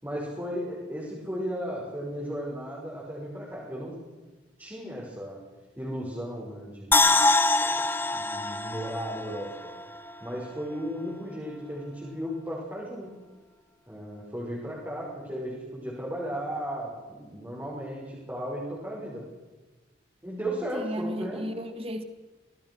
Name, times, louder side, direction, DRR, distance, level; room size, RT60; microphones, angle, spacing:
voice 1, 0.0-3.9 4.6-5.4 5.8-7.1 7.7-7.8 8.1-9.7 10.2-13.2 13.9-19.2 20.2-21.4, equal, 10° right, -6 dB, 6.1 m, -35 dB
sound 1, 6.9-10.1 10.5-10.6, left 2 dB, 10° left, 0.9 m, -24 dB
voice 2, 20.7-22.0, equal, 30° right, 8 dB, 2.1 m, -34 dB
26.5 x 19.5 x 6.4 m, 1.3 s
head